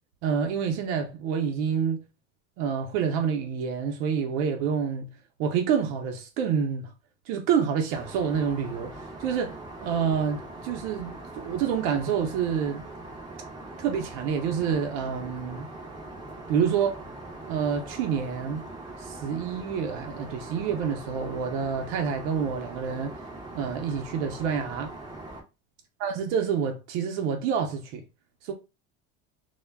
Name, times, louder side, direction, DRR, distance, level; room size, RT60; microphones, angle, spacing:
voice 1, 0.2-2.0 2.6-5.1 5.4-6.9 7.3-12.8 13.8-15.7 16.5-17.0 17.4-18.6 19.0-23.1 23.5-24.9 26.0-28.0 28.4-28.5, right 7 dB, 85° right, 0.6 m, -28 dB
Aircraft, 7.9-25.4, right 2 dB, 15° right, 0.4 m, -41 dB
2.2 x 2.1 x 3.3 m
cardioid pair, 165°, 35 cm